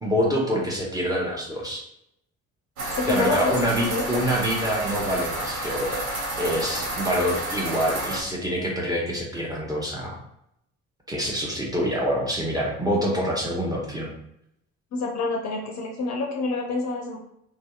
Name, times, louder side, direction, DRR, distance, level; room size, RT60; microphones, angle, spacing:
voice 1, 0.0-1.8 3.1-6.1 6.4-10.2 11.1-14.1, equal, 10° right, -2 dB, 0.8 m, -26 dB
sound 1, 2.8-8.2, right 1 dB, 90° right, 0.5 m, -30 dB
voice 2, 2.9-3.6 3.9-4.0 14.9-17.2, left 3 dB, 45° left, 0 dB, 0.6 m, -27 dB
2.6 x 2.0 x 2.3 m, 0.75 s
hypercardioid pair, 45°, 40 cm